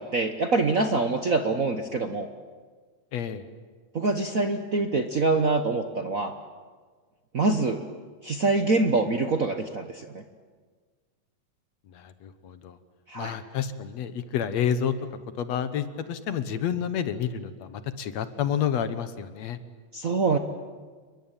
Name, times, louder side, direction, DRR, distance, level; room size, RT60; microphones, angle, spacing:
voice 1, 0.0-2.3 3.9-6.3 7.3-7.8 8.2-10.2 13.1-13.4 19.9-20.4, right 3 dB, 65° right, 6 dB, 0.8 m, -25 dB
voice 2, 3.1-3.4 11.9-12.8 13.2-14.9 15.4-19.6, left 8 dB, 65° left, 12 dB, 2.3 m, -29 dB
28.5 x 23.0 x 9.1 m, 1.5 s
omnidirectional pair, 3.4 m